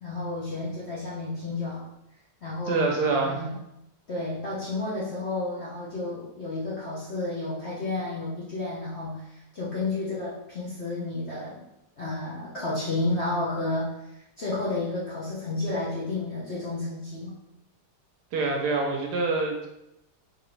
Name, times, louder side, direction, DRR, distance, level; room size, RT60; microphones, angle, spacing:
voice 1, 0.0-1.9 2.4-2.8 3.2-3.6 4.1-11.6 12.0-13.9 14.4-17.4, left 2 dB, 55° left, -8 dB, 0.7 m, -31 dB
voice 2, 2.7-3.4 18.3-19.7, right 3 dB, 70° right, 1 dB, 1.1 m, -25 dB
3.9 x 3.1 x 3.1 m, 0.86 s
omnidirectional pair, 2.0 m